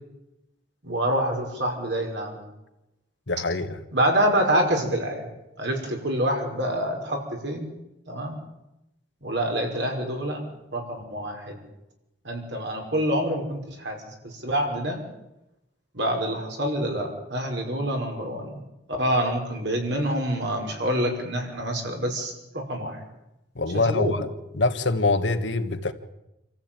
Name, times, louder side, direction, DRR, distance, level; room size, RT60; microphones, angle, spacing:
voice 1, 0.8-2.4 3.9-5.3 5.6-7.7 8.1-8.4 9.2-10.4 10.7-11.6 12.2-15.0 15.9-18.6 19.0-23.0 23.7-24.1, right 1 dB, 65° right, 5.5 m, -26 dB
voice 2, 3.3-3.8 23.5-24.3 24.5-25.9, left 3 dB, 75° left, 1.7 m, -24 dB
27.0 x 14.5 x 9.0 m
head